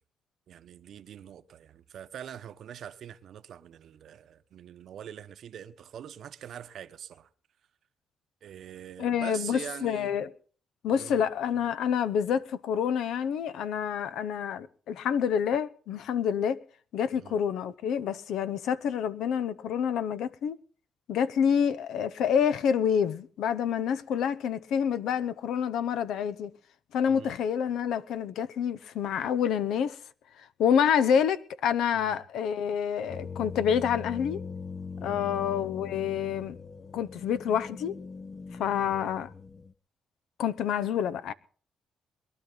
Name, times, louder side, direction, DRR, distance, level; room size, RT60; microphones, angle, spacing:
voice 1, 0.5-7.3 8.4-10.2 10.9-11.2 17.1-17.4 27.1-27.4 31.9-32.2 35.0-35.4 38.9-39.0, right 9 dB, 65° right, 0.9 m, -44 dB
voice 2, 9.0-10.3 10.8-16.6 16.9-20.6 21.1-26.5 26.9-30.0 30.6-34.4 35.0-36.5 36.9-38.0 38.6-39.3 40.4-41.3, left 8 dB, 80° left, 0.8 m, -28 dB
sound 1, 33.1-39.7, left 5 dB, 40° left, 0.7 m, -41 dB
22.0 x 11.5 x 4.0 m
cardioid pair, 90°, 0 cm